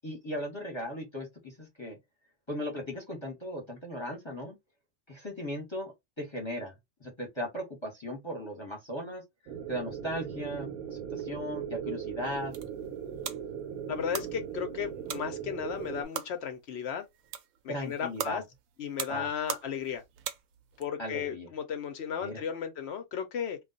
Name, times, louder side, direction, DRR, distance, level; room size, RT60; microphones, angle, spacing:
voice 1, 0.0-2.0 2.5-4.6 5.1-6.7 7.0-9.2 9.7-12.5 17.7-18.4 19.1-19.3 21.0-21.5 22.2-22.4, equal, 20° left, 0.9 m, -37 dB
sound 1, 9.5-16.0, right 8 dB, 85° right, 1.2 m, -38 dB
sound 2, 12.2-20.9, right 9 dB, 70° right, 0.9 m, -42 dB
voice 2, 13.9-17.0 17.6-18.4 18.8-20.0 20.8-23.6, left 8 dB, 60° left, 0.8 m, -35 dB
2.4 x 2.3 x 3.8 m
omnidirectional pair, 1.5 m